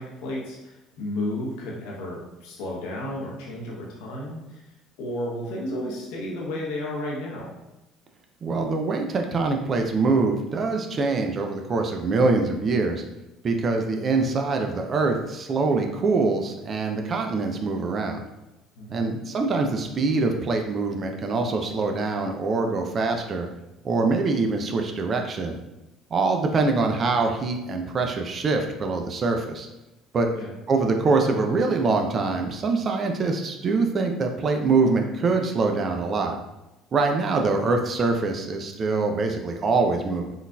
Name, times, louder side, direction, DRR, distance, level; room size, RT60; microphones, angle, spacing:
voice 1, 0.0-4.6 5.0-7.5 18.8-19.1 30.3-30.5, left 1 dB, 75° left, -3 dB, 0.8 m, -33 dB
voice 2, 8.4-13.0 13.4-18.2 18.9-23.5 23.8-25.6 26.1-29.7 30.1-30.3 30.7-36.3 36.9-40.3, right 3 dB, 40° right, 3 dB, 0.4 m, -24 dB
3.8 x 2.5 x 2.2 m, 0.97 s
supercardioid pair, 75°, 0 cm